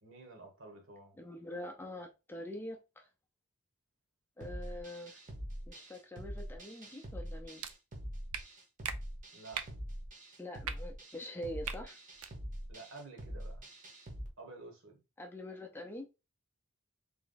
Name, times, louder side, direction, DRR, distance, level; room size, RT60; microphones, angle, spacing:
voice 1, 0.0-1.1 9.3-9.7 12.7-13.7 14.4-15.0, right 3 dB, 65° right, 1.4 m, -51 dB
voice 2, 1.1-3.1 4.4-5.2 5.7-7.6 10.4-12.0 15.2-16.1, left 1 dB, 10° left, 0.6 m, -44 dB
sound 1, 4.4-14.3, equal, 35° right, 1.0 m, -44 dB
sound 2, 7.6-7.7 8.3-8.4 8.8-9.0 9.5-9.7 10.6-10.7 11.6-11.8 12.1-12.3, right 8 dB, 85° right, 0.5 m, -38 dB
3.4 x 3.1 x 3.9 m
head